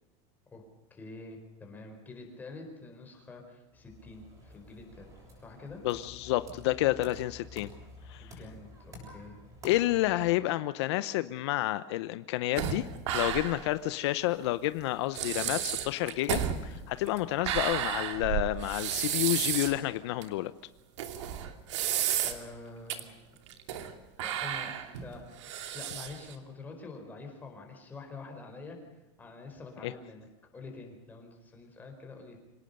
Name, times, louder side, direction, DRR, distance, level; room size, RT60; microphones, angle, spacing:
voice 1, 0.9-5.1 5.4-5.8 8.2-9.4 9.7-9.8 22.2-23.2 24.2-25.4 25.7-28.8 29.2-30.3 30.5-32.4, left 3 dB, 10° left, 2 dB, 4.7 m, -46 dB
sound 1, 3.7-10.3, left 1 dB, 20° right, 7.3 m, -50 dB
voice 2, 5.8-7.7 8.1-8.3 9.6-12.8 13.1-20.5 29.8-29.9, left 16 dB, 65° left, 14 dB, 0.8 m, -30 dB
sound 2, 12.6-13.7 14.0-14.1 14.8-14.9 15.1-19.8 20.2-20.3 21.0-22.5 22.9-23.0 23.5-23.9 24.2-26.3, right 10 dB, 80° right, 2.8 m, -32 dB
26.0 x 18.0 x 6.7 m, 1.1 s
supercardioid pair, 165°, 15 cm